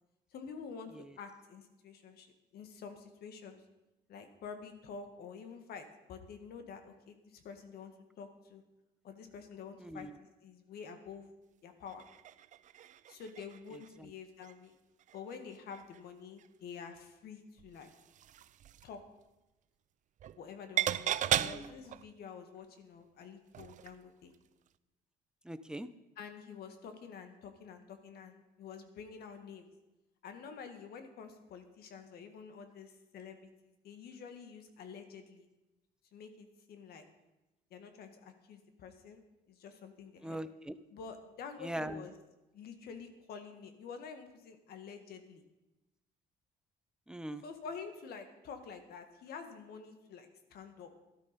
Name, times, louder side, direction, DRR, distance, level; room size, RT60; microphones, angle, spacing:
voice 1, 0.3-3.6 4.1-8.6 9.0-10.1 10.4-11.3 11.6-12.0 13.1-14.7 15.1-17.9 18.8-19.0 20.4-24.3 26.2-29.7 30.2-35.5 36.1-37.0 37.7-39.2 39.5-40.4 40.9-42.1 42.5-45.4 47.4-50.9, left 6 dB, 65° left, 7 dB, 1.9 m, -48 dB
voice 2, 9.8-10.2 14.0-14.1 21.4-21.7 25.4-25.9 40.2-40.7 41.6-42.1 47.1-47.4, right 1 dB, 5° right, 12 dB, 0.7 m, -41 dB
sound 1, 11.9-14.0 14.4-14.6 15.0-16.0 16.4-16.5 17.6-19.0 20.2-20.5 20.8-22.1 23.5-24.0 24.3-24.4, right 11 dB, 50° right, 0.5 m, -37 dB
13.5 x 12.0 x 5.3 m, 1.0 s
cardioid pair, 110°, 17 cm